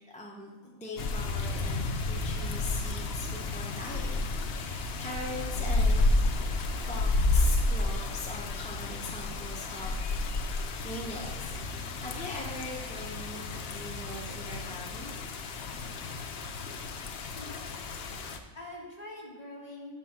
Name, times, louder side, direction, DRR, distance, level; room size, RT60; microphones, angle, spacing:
voice 1, 0.1-6.1 6.7-11.6 12.0-15.1 17.1-17.3, left 1 dB, 5° left, -2 dB, 0.7 m, -41 dB
sound 1, 1.0-18.4, left 2 dB, 55° left, 0.8 m, -31 dB
voice 2, 17.3-17.9 18.5-20.0, left 2 dB, 30° left, -1 dB, 1.6 m, -44 dB
7.0 x 6.0 x 5.8 m, 1.3 s
omnidirectional pair, 1.4 m